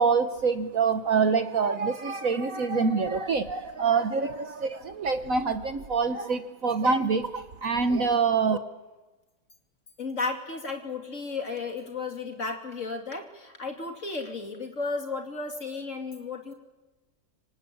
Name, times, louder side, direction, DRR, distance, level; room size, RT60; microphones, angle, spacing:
voice 1, 0.0-8.6, right 5 dB, 50° right, 9 dB, 1.3 m, -25 dB
voice 2, 10.0-16.5, left 4 dB, 40° left, 3 dB, 3.1 m, -34 dB
26.5 x 25.0 x 8.6 m, 1.2 s
omnidirectional pair, 2.0 m